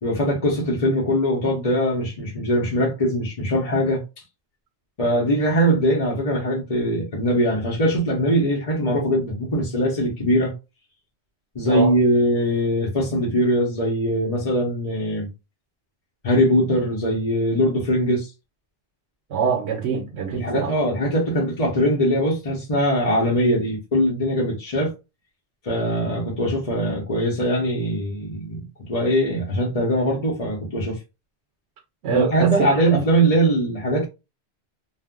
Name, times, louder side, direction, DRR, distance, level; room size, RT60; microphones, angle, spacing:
voice 1, 0.0-4.0 5.0-10.5 11.5-15.3 16.2-18.3 20.3-24.9 25.6-31.0 32.1-34.0, equal, 40° left, 0.7 m, -21 dB
voice 2, 19.3-20.7 32.0-33.0, right 6 dB, 85° right, 0.9 m, -24 dB
2.4 x 2.1 x 3.5 m
omnidirectional pair, 1.1 m